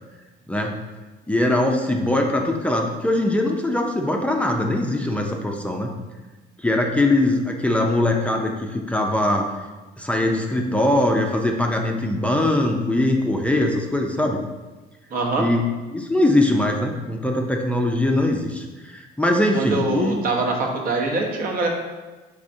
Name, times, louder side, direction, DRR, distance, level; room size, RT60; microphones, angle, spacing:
voice 1, 0.5-0.8 1.3-5.9 6.6-9.5 10.0-14.4 15.4-15.6 15.9-20.2, left 1 dB, 10° left, 1 dB, 0.4 m, -21 dB
voice 2, 15.1-15.5 19.5-21.7, right 3 dB, 60° right, 1 dB, 0.8 m, -23 dB
5.0 x 3.3 x 2.6 m, 1.2 s
cardioid pair, 110°, 17 cm